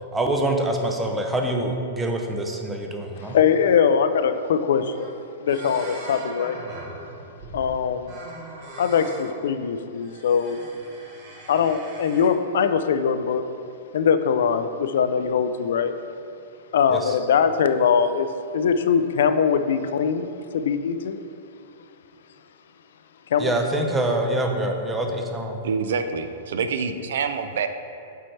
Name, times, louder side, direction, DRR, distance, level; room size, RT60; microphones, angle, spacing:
voice 1, 0.1-3.4 16.9-17.1 23.4-25.5, right 1 dB, 10° right, 2 dB, 0.5 m, -25 dB
voice 2, 3.2-5.1 5.4-6.6 7.5-8.2 8.8-10.6 11.5-13.4 13.9-15.9 16.7-21.2 23.3-23.5, left 7 dB, 70° left, 10 dB, 0.4 m, -22 dB
sound 1, 4.5-4.6 4.8-5.2 5.5-7.7 8.0-9.3 9.9-12.3, right 2 dB, 35° right, 1.1 m, -41 dB
voice 3, 25.6-27.7, right 5 dB, 70° right, 9 dB, 0.4 m, -26 dB
8.3 x 4.5 x 3.2 m, 2.6 s
supercardioid pair, 165°, 0 cm